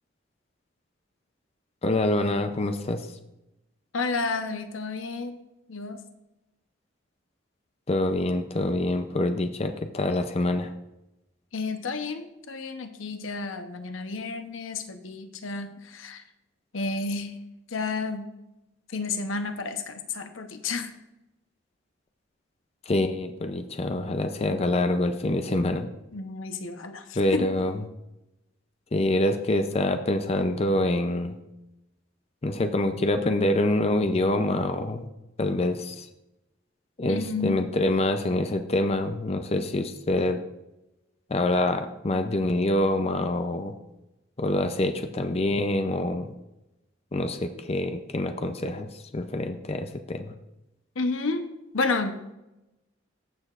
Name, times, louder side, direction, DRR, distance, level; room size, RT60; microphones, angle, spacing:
voice 1, 1.8-3.0 7.9-10.7 22.9-25.9 27.2-27.8 28.9-31.3 32.4-35.1 35.4-36.1 37.0-40.4 41.3-43.7 44.4-46.3 47.1-48.9 49.1-50.3, left 1 dB, 30° left, 7 dB, 0.5 m, -26 dB
voice 2, 3.9-5.4 5.7-6.0 11.5-16.2 16.7-17.4 17.7-18.2 18.9-20.9 26.1-27.5 37.1-37.7 51.0-52.2, left 3 dB, 90° left, 7 dB, 0.9 m, -31 dB
14.0 x 6.7 x 2.5 m, 0.92 s
head